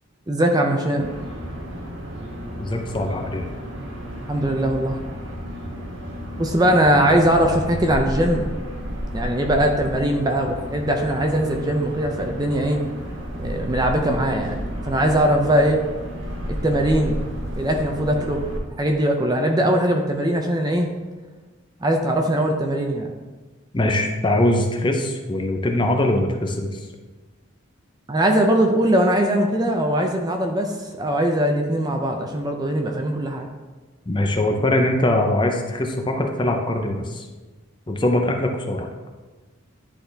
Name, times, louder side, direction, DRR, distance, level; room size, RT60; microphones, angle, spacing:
voice 1, 0.3-1.1 4.3-5.0 6.4-8.5 9.1-12.8 13.4-14.6 14.8-15.8 16.5-18.4 18.8-20.9 21.8-23.1 28.1-33.5, right 1 dB, 20° right, 3 dB, 0.5 m, -21 dB
sound 1, 1.0-18.6, equal, 65° right, 1.2 m, -32 dB
voice 2, 2.6-3.5 23.7-26.9 34.1-37.3 37.9-38.9, left 1 dB, 25° left, 3 dB, 0.6 m, -22 dB
10.0 x 4.1 x 3.4 m, 1.3 s
head